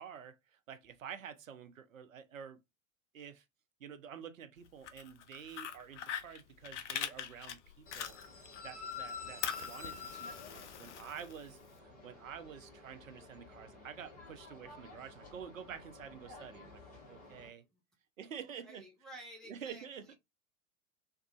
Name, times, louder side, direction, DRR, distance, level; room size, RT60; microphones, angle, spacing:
voice 1, 0.0-2.6 3.1-3.4 3.8-17.6 18.2-18.8 19.5-20.1, right 8 dB, 75° right, 0.6 m, -49 dB
Fire, 4.7-8.6 8.9-11.7, left 9 dB, 60° left, 0.5 m, -42 dB
sound 1, 7.9-17.5, left 5 dB, 20° left, 1.1 m, -50 dB
voice 2, 8.9-9.5 17.7-17.8 18.4-20.1, right 1 dB, ahead, 0.3 m, -54 dB
2.6 x 2.3 x 2.3 m
figure-of-eight pair, 85°, 40 cm